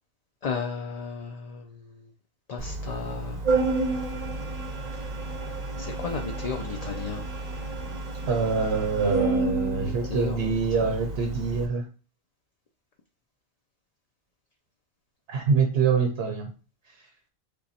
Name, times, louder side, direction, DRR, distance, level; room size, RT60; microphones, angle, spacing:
voice 1, 0.4-2.1 2.5-3.5 4.9-5.0 5.8-7.5 9.8-10.6, left 5 dB, 50° left, 3 dB, 0.5 m, -35 dB
Organ, 2.6-11.7, right 2 dB, 45° right, 0.7 m, -30 dB
voice 2, 8.3-11.8 15.3-16.5, right 5 dB, 75° right, 5 dB, 0.9 m, -25 dB
5.3 x 2.2 x 4.1 m, 0.35 s
omnidirectional pair, 1.1 m